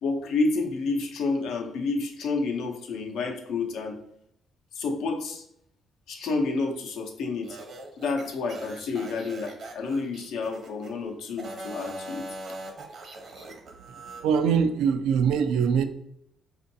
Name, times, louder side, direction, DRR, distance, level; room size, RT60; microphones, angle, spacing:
voice 1, 0.0-4.0 4.8-5.4 6.1-7.6 8.0-12.3, left 3 dB, 80° left, 2 dB, 0.6 m, -29 dB
sound 1, 7.4-10.9 11.3-14.2, right 1 dB, 60° right, 0.8 m, -41 dB
voice 2, 14.2-15.8, right 7 dB, 90° right, 10 dB, 0.3 m, -22 dB
4.3 x 2.5 x 2.7 m, 0.71 s
cardioid pair, 90°, 0 cm